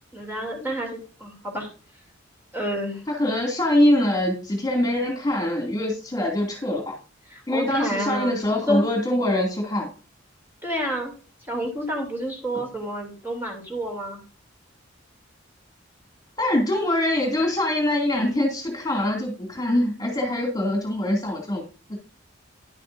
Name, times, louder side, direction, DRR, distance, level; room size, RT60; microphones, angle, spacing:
voice 1, 0.1-1.7 2.5-3.0 7.3-8.3 8.7-8.8 10.6-11.1 11.4-14.2, equal, 10° right, 0 dB, 3.0 m, -29 dB
voice 2, 3.1-7.0 7.5-9.9 16.4-21.6 21.9-22.0, left 1 dB, 20° left, 0 dB, 2.6 m, -23 dB
11.0 x 8.3 x 2.7 m, 0.37 s
head